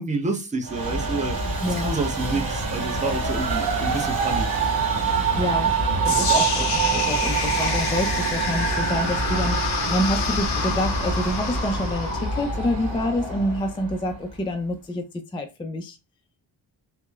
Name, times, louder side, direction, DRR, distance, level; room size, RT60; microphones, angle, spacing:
voice 1, 0.0-1.4 1.7-4.5 6.1-6.3, right 3 dB, 15° right, 0.7 m, -29 dB
Train, 0.6-14.1, right 4 dB, 55° right, 1.6 m, -25 dB
voice 2, 5.4-5.7 6.1-15.0 15.3-16.0, left 1 dB, 10° left, 0.3 m, -27 dB
sound 1, 6.0-14.1, left 6 dB, 70° left, 0.6 m, -29 dB
2.9 x 2.1 x 2.3 m
cardioid pair, 85°, 42 cm